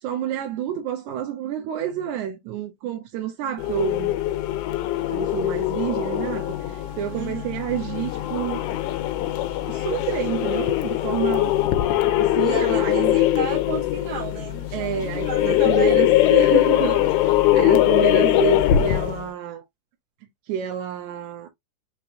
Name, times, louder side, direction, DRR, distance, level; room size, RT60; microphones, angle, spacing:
voice 1, 0.0-4.1 5.1-8.6 9.7-11.6 12.2-13.2 14.7-19.6 20.5-21.5, right 10 dB, 90° right, 2.2 m, -29 dB
sound 1, 3.6-19.3, left 13 dB, 85° left, 2.0 m, -21 dB
Wind instrument woodwind instrument, 5.6-10.7, left 3 dB, 40° left, 0.8 m, -44 dB
voice 2, 7.1-7.5 12.4-16.0, right 6 dB, 70° right, 2.5 m, -33 dB
5.8 x 3.0 x 2.5 m
omnidirectional pair, 3.4 m